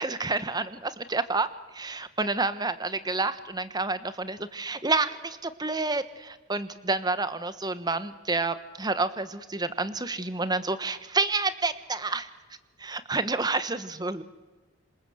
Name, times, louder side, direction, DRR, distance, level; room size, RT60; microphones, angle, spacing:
voice 1, 0.0-1.5 1.7-12.2 12.8-14.2, right 3 dB, 20° right, 13 dB, 1.2 m, -29 dB
27.0 x 26.5 x 8.0 m, 1.2 s
head